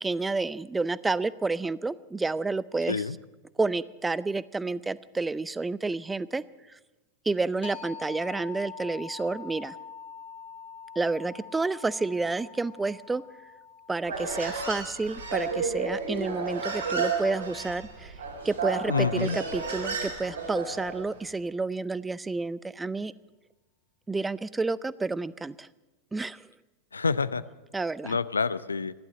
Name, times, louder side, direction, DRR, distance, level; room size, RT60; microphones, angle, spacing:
voice 1, 0.0-3.1 3.6-6.4 6.7-6.8 7.3-9.8 11.0-13.2 13.9-18.1 18.4-23.1 24.1-25.7 26.1-26.5 27.7-28.2, right 3 dB, 10° right, 19 dB, 0.5 m, -30 dB
sound 1, 7.6-17.0, left 6 dB, 55° left, 2.1 m, -46 dB
Human voice, 14.0-21.1, right 4 dB, 70° right, 3.9 m, -32 dB
voice 2, 18.9-19.4 26.9-27.4 28.0-28.9, left 5 dB, 75° left, 17 dB, 0.5 m, -27 dB
14.5 x 11.5 x 8.5 m, 1.1 s
figure-of-eight pair, 90°, 0 cm